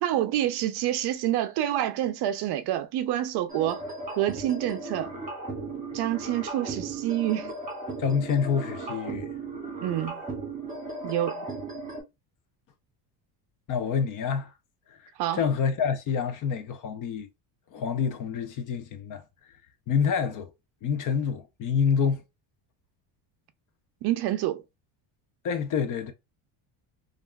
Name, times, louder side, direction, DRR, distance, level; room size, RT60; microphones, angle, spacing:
voice 1, 0.0-3.8 4.2-5.1 5.9-7.5 9.8-10.2 11.0-11.5 15.2-15.4 24.0-24.6, right 13 dB, 55° right, 0.5 m, -27 dB
sound 1, 3.5-12.0, right 3 dB, 15° right, 1.2 m, -36 dB
voice 2, 8.0-9.3 13.7-14.5 15.3-17.3 17.7-19.2 19.9-20.5 20.8-22.2 25.4-26.1, left 6 dB, 40° left, 0.5 m, -27 dB
3.3 x 2.4 x 2.2 m
cardioid pair, 135°, 50 cm